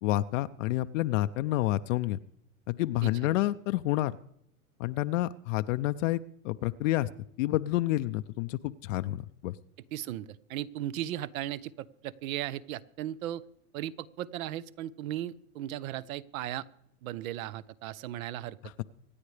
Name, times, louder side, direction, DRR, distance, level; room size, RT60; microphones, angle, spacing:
voice 1, 0.0-2.2 2.7-4.1 4.8-7.1 7.4-9.6 18.8-18.9, left 16 dB, 55° left, 11 dB, 0.6 m, -29 dB
voice 2, 3.0-3.3 9.9-13.4 13.7-16.7 17.0-18.8, right 12 dB, 65° right, 19 dB, 0.8 m, -37 dB
25.5 x 9.6 x 3.3 m, 0.73 s
hypercardioid pair, 115°, 45 cm